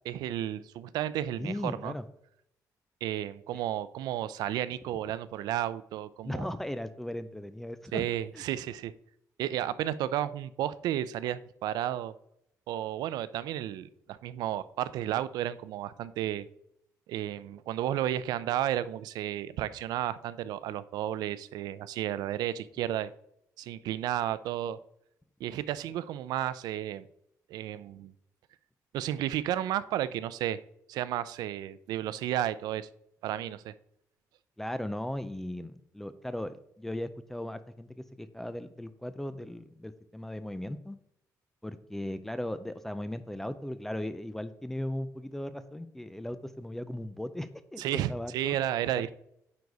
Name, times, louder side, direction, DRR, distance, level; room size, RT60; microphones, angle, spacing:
voice 1, 0.0-1.9 3.0-6.5 7.9-8.9 9.4-12.1 12.7-16.5 17.1-23.1 23.6-24.8 25.4-27.1 27.5-28.1 28.9-30.6 30.9-32.9 33.2-33.7 47.8-49.1, right 12 dB, 85° right, 16 dB, 0.4 m, -32 dB
voice 2, 1.4-2.0 3.5-3.6 6.2-8.0 8.3-8.4 34.6-41.0 41.6-48.6 49.0-49.1, left 1 dB, 5° left, 12 dB, 0.3 m, -37 dB
9.6 x 4.0 x 4.6 m, 0.75 s
cardioid pair, 180°, 7 cm